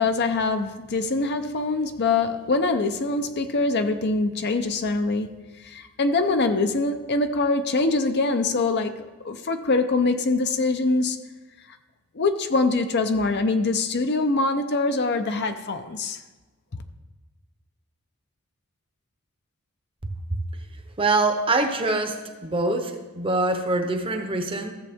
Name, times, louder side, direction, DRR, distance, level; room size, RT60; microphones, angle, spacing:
voice 1, 0.0-11.2 11.7-11.8 12.1-16.2, left 3 dB, 50° left, 0.6 m, -24 dB
voice 2, 21.0-24.7, right 2 dB, 25° right, 0.8 m, -24 dB
14.5 x 7.1 x 3.5 m
head